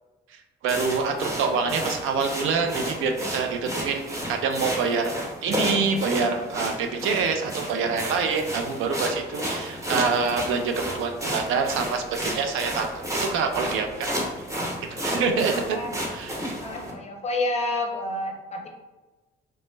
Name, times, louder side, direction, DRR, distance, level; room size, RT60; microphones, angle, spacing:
voice 1, 0.6-5.1 5.4-14.2 14.9-15.8 16.1-16.4, right 5 dB, 85° right, 5 dB, 0.4 m, -26 dB
sound 1, 0.7-16.9, equal, 15° right, 0.8 m, -32 dB
voice 2, 16.5-18.7, left 2 dB, 35° left, 2 dB, 0.6 m, -29 dB
3.1 x 2.0 x 3.1 m, 1.2 s
cardioid pair, 90°, 20 cm